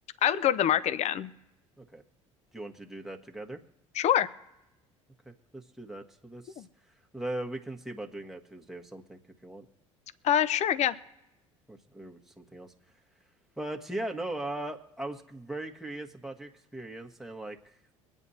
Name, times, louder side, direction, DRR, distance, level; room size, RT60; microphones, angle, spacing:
voice 1, 0.2-1.3 4.0-4.3 6.6-6.7 10.2-11.0, left 10 dB, 45° left, 16 dB, 0.6 m, -25 dB
voice 2, 2.5-3.6 5.2-6.7 7.1-9.7 11.7-12.7 13.6-17.8, right 1 dB, ahead, 2 dB, 1.5 m, -39 dB
24.0 x 9.1 x 2.8 m, 0.94 s
hypercardioid pair, 65°, 16 cm